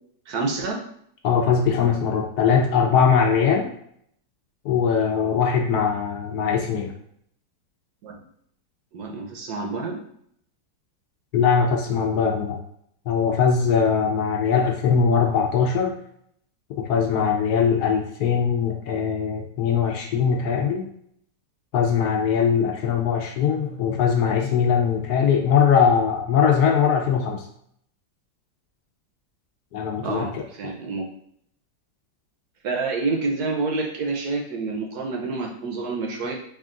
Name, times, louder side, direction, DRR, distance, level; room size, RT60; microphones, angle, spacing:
voice 1, 0.3-0.8 8.0-8.2 8.9-10.0 30.0-31.1 32.6-36.3, right 3 dB, 70° right, 1 dB, 1.1 m, -28 dB
voice 2, 1.2-3.7 4.6-6.9 11.3-12.6 13.1-15.9 16.8-20.9 21.7-27.5 29.7-30.4, left 6 dB, 70° left, 2 dB, 1.0 m, -21 dB
3.6 x 2.4 x 3.7 m, 0.69 s
omnidirectional pair, 1.9 m